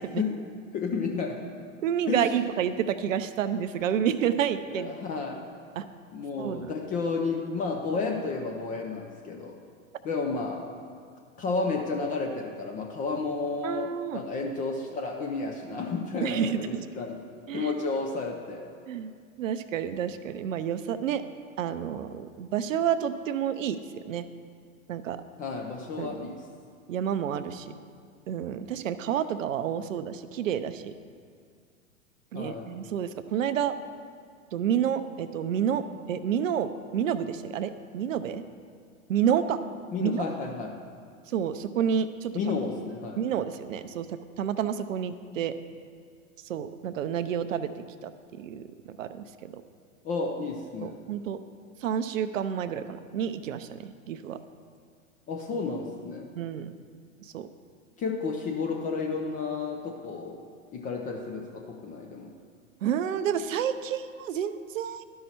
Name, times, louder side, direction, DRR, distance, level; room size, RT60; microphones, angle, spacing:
voice 1, 0.7-1.4 2.1-2.3 4.7-5.5 6.1-9.6 10.0-10.7 11.4-17.2 17.5-18.7 25.4-26.4 32.3-32.7 39.9-40.8 42.3-43.2 50.0-51.0 55.3-56.3 58.0-60.4 60.7-62.3, left 4 dB, 20° left, 2 dB, 0.5 m, -32 dB
voice 2, 1.8-5.0 5.8-5.9 6.4-6.7 13.6-14.2 16.2-16.7 17.5-17.8 18.9-19.1 19.4-21.2 21.6-23.8 24.0-24.2 24.9-25.2 26.0-26.2 26.9-27.7 28.3-30.9 32.3-33.7 34.5-38.4 39.1-39.6 40.0-40.2 41.3-42.3 43.2-45.5 46.5-47.7 48.0-48.7 49.0-49.6 50.8-51.4 51.8-54.4 56.4-56.7 57.3-57.5 62.8-65.0, right 9 dB, 70° right, 11 dB, 0.6 m, -29 dB
12.0 x 5.6 x 4.3 m, 2.1 s
hypercardioid pair, 105°, 41 cm